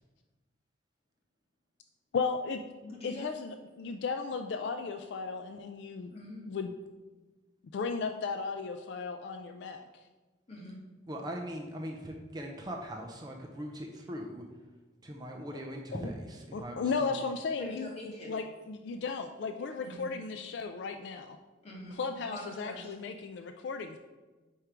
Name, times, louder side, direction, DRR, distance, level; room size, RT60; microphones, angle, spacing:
voice 1, 2.1-2.6 3.0-6.1 6.5-6.7 7.7-9.9 15.7-16.1 16.5-17.9 18.3-21.4 22.0-24.0, left 5 dB, 60° left, 7 dB, 0.3 m, -35 dB
voice 2, 2.8-3.3 6.1-6.4 10.5-10.8 17.6-18.3 19.8-20.0 21.6-22.0 22.3-22.9, left 1 dB, 30° left, -4 dB, 1.6 m, -44 dB
voice 3, 11.1-14.4 15.0-17.1, equal, 20° right, 2 dB, 0.4 m, -40 dB
4.6 x 4.4 x 4.9 m, 1.3 s
head